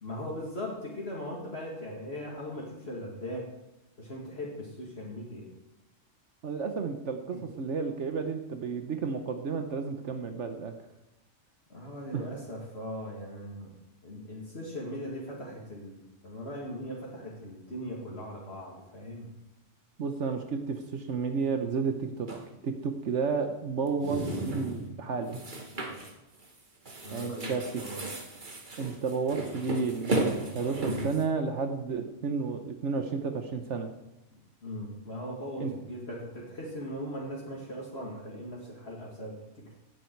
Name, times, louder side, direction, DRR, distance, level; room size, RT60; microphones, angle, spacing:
voice 1, 0.0-3.5 4.0-5.5 7.3-7.4 11.7-13.7 14.0-19.3 25.8-26.2 27.0-28.1 34.6-39.8, equal, 55° left, -3 dB, 2.5 m, -39 dB
voice 2, 6.4-10.7 12.1-12.2 20.0-22.3 22.6-25.4 27.1-27.8 28.8-33.9 35.6-35.7, right 5 dB, 75° right, 6 dB, 1.4 m, -32 dB
sound 1, 22.3-22.4 23.9-24.9 25.3-26.1 26.4-26.6 26.9-31.2, right 1 dB, 40° right, 1.7 m, -34 dB
16.0 x 9.8 x 4.7 m, 0.95 s
omnidirectional pair, 1.2 m